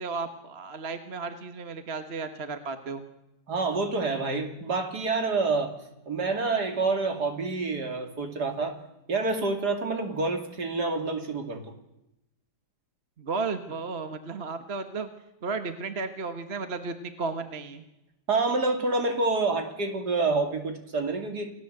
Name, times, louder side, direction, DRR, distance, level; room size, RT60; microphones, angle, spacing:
voice 1, 0.0-3.0 13.2-15.1 15.4-17.8, right 4 dB, 35° right, 8 dB, 1.6 m, -34 dB
voice 2, 3.5-5.7 6.1-8.8 9.1-11.7 18.3-21.5, right 3 dB, 60° right, 5 dB, 3.1 m, -27 dB
29.0 x 17.5 x 8.0 m, 0.91 s
omnidirectional pair, 2.0 m